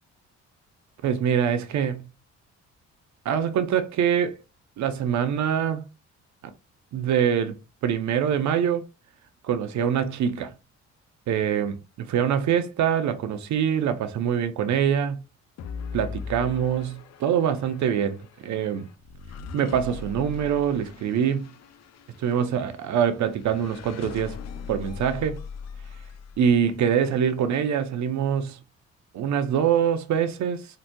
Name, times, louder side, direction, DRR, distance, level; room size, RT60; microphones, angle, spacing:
voice 1, 1.0-2.1 3.2-4.4 4.8-5.9 6.9-7.6 7.8-8.9 9.4-10.5 11.3-15.2 15.9-18.9 19.5-21.5 22.2-24.4 24.7-25.4 26.4-28.6 29.1-30.7, right 8 dB, 70° right, 0.7 m, -24 dB
sound 1, 15.6-26.9, left 5 dB, 60° left, 0.5 m, -40 dB
4.0 x 2.6 x 2.2 m
cardioid pair, 90°, 30 cm